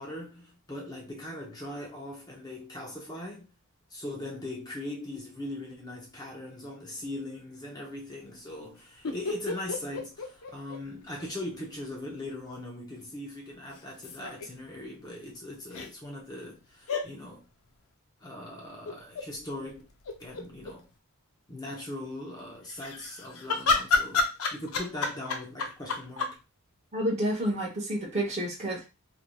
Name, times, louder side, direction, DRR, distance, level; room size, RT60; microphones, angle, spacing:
voice 1, 0.0-3.5 3.9-17.5 18.2-19.9 20.2-20.9 21.5-26.4, left 1 dB, 20° left, 0.7 m, -40 dB
sound 1, 9.0-11.3 11.5-11.6 13.7-14.5 15.7-15.9 16.9-17.1 18.9-19.3 19.7-19.8 20.0-20.7 22.7-26.4, left 3 dB, 65° left, 0.6 m, -30 dB
voice 2, 26.9-28.9, right 1 dB, 30° right, 0.8 m, -29 dB
3.2 x 2.6 x 2.2 m
head